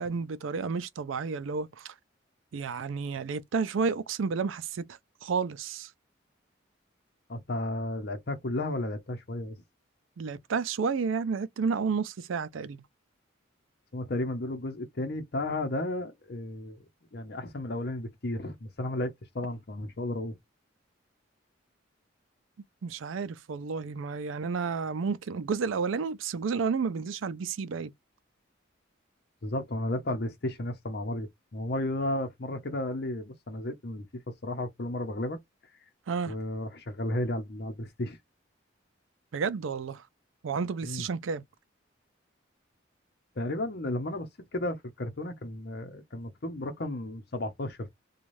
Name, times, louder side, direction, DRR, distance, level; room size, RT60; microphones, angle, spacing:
voice 1, 0.0-1.9 2.5-4.8 5.2-5.9 10.2-12.8 22.8-27.9 36.1-36.3 39.3-40.0 40.4-41.4, right 5 dB, 90° right, 0.4 m, -31 dB
voice 2, 7.3-9.6 13.9-16.8 17.1-20.4 29.4-34.0 34.4-35.4 36.3-38.2 40.8-41.0 43.4-47.9, left 1 dB, 55° left, 0.7 m, -33 dB
3.1 x 2.3 x 2.6 m
head